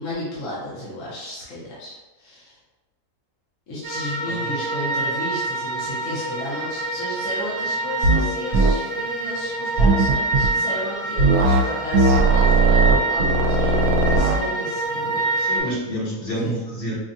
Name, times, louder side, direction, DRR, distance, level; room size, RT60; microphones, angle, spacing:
voice 1, 0.0-2.6 3.7-15.2 15.6-15.8 16.4-16.5, left 1 dB, 60° left, -8 dB, 1.4 m, -33 dB
sound 1, 3.8-15.6, right 2 dB, 40° right, 0.7 m, -26 dB
sound 2, 8.0-8.3 8.5-8.7 9.8-10.5 11.2-11.6 11.9-14.4, right 3 dB, 75° right, 1.1 m, -17 dB
voice 2, 15.4-16.9, equal, 40° left, -6 dB, 1.2 m, -29 dB
5.2 x 2.4 x 2.7 m, 1.1 s
omnidirectional pair, 1.6 m